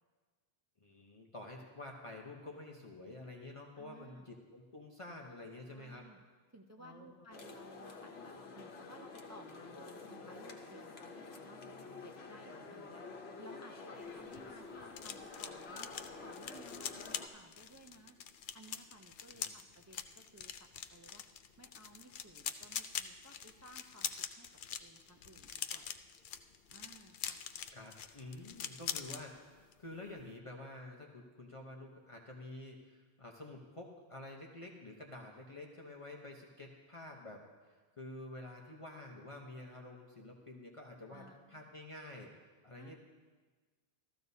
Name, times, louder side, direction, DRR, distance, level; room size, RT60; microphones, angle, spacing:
voice 1, 0.8-6.0 6.8-7.1 19.3-19.5 27.7-42.3 42.6-43.0, left 2 dB, 35° left, -1 dB, 0.9 m, -49 dB
voice 2, 3.8-4.3 5.7-6.2 6.5-15.9 16.2-18.2 18.5-21.2 21.6-24.5 24.8-25.9 26.7-27.4 41.1-41.7 42.8-43.0, right 1 dB, 25° right, 2 dB, 0.4 m, -58 dB
sound 1, 7.3-17.3, left 4 dB, 80° left, 1.2 m, -49 dB
sound 2, 14.0-29.2 29.6-29.8 30.1-30.4, left 8 dB, 60° left, 0.6 m, -44 dB
14.5 x 14.0 x 2.7 m, 1.4 s
omnidirectional pair, 1.0 m